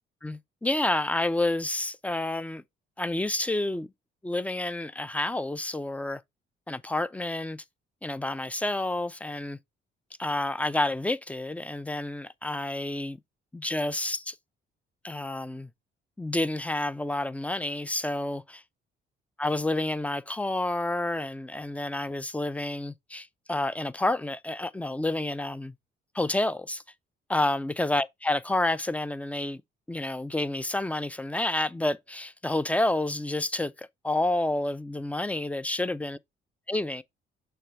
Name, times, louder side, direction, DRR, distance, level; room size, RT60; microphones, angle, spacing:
voice 1, 0.2-2.6 3.0-3.9 4.2-6.2 6.7-7.6 8.0-9.6 10.2-13.2 13.5-14.4 15.0-15.7 16.2-18.6 19.4-25.7 26.1-26.8 27.3-29.6 29.9-36.2 36.7-37.0, left 2 dB, 5° left, 0.5 m, -29 dB
6.5 x 3.4 x 4.5 m
cardioid pair, 90°, 20 cm